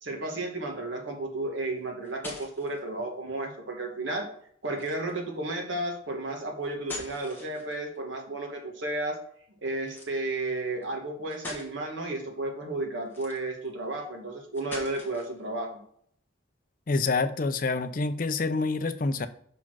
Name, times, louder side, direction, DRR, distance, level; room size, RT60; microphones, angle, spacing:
voice 1, 0.0-4.3 4.6-9.2 9.6-15.8, right 2 dB, 70° right, 2 dB, 1.5 m, -33 dB
sound 1, 1.8-2.8 4.7-5.2 6.6-8.0 9.9-10.1 10.8-10.9 11.3-11.7 13.0-13.7 14.5-15.4, left 2 dB, 10° left, 1.4 m, -42 dB
voice 2, 16.9-19.3, left 3 dB, 45° left, 11 dB, 0.5 m, -27 dB
5.8 x 4.3 x 6.1 m, 0.63 s
head